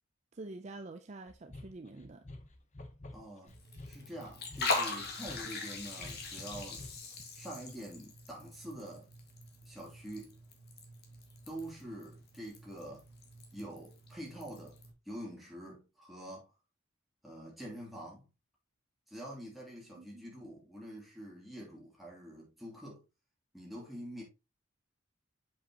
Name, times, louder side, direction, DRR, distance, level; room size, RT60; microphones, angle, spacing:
voice 1, 0.3-2.2 20.0-20.3, right 2 dB, 35° right, 0.5 m, -47 dB
sound 1, 1.3-7.2, left 1 dB, 35° left, 0.9 m, -50 dB
voice 2, 3.1-3.6 3.8-6.9 7.3-9.1 9.6-10.4 11.5-13.0 13.5-14.8 15.0-16.5 17.2-18.3 19.1-23.0 23.5-24.2, right 1 dB, ahead, 2.8 m, -46 dB
Liquid, 3.5-14.9, left 3 dB, 50° left, 1.9 m, -41 dB
7.5 x 5.6 x 2.9 m
head